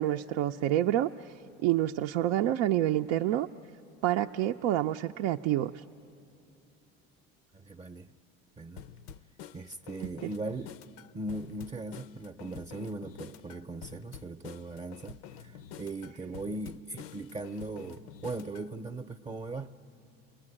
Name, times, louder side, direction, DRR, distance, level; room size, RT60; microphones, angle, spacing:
voice 1, 0.0-3.5 4.0-5.8, right 13 dB, 80° right, 4 dB, 0.5 m, -28 dB
voice 2, 7.5-8.1 8.6-8.8 9.5-10.8 11.1-19.8, right 2 dB, 25° right, 6 dB, 0.7 m, -39 dB
sound 1, 8.8-18.7, left 8 dB, 85° left, 0.6 m, -48 dB
29.5 x 20.0 x 9.9 m, 2.7 s
supercardioid pair, 95°, 29 cm